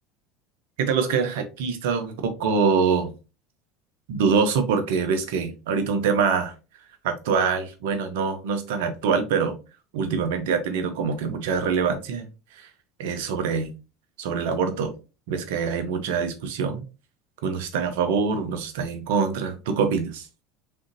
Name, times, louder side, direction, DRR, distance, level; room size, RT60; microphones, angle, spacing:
voice 1, 0.8-3.1 4.1-6.5 7.0-9.6 9.9-12.7 13.0-13.7 14.2-14.9 15.3-16.8 17.4-20.3, right 5 dB, 75° right, 7 dB, 0.8 m, -24 dB
3.6 x 3.5 x 2.7 m, 0.31 s
hypercardioid pair, 80°, 0 cm